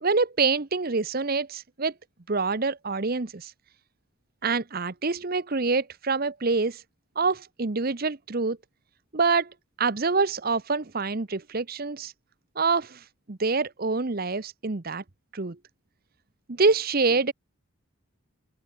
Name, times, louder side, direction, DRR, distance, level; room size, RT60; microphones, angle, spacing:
voice 1, 0.0-1.9 2.3-3.5 4.4-6.8 7.2-8.6 9.1-9.5 9.8-12.1 12.6-13.0 13.3-15.0 15.3-15.6 16.5-17.3, right 4 dB, 45° right, 0.9 m, -26 dB
open air
head